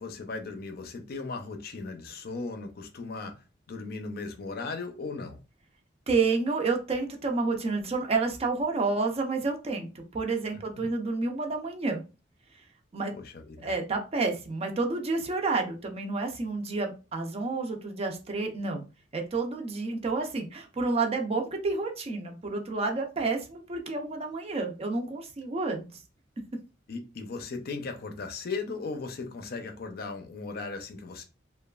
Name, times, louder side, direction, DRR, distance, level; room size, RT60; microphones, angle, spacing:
voice 1, 0.0-3.4 3.7-5.4 10.5-10.9 13.1-13.7 26.9-31.2, left 3 dB, 55° left, 0.5 m, -37 dB
voice 2, 6.1-12.0 12.9-13.1 13.6-18.9 19.1-26.0, right 3 dB, 35° right, 0.5 m, -30 dB
3.0 x 2.2 x 2.3 m
head